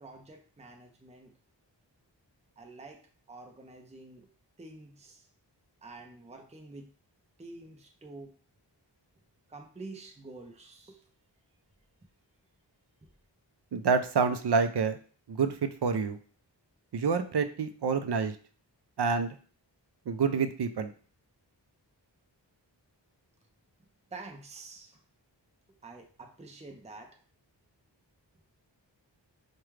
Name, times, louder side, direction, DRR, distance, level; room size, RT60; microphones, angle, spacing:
voice 1, 0.0-1.3 2.6-4.3 4.6-5.3 5.8-6.9 7.4-8.3 9.5-11.0 24.1-25.0 25.8-27.2, right 3 dB, 15° right, 2 dB, 0.6 m, -48 dB
voice 2, 13.7-15.0 15.3-15.5 15.8-16.2 16.9-18.3 19.0-19.4 20.1-20.9, right 5 dB, 65° right, 9 dB, 0.5 m, -27 dB
4.8 x 2.2 x 3.2 m, 0.41 s
wide cardioid pair, 45°, 45 cm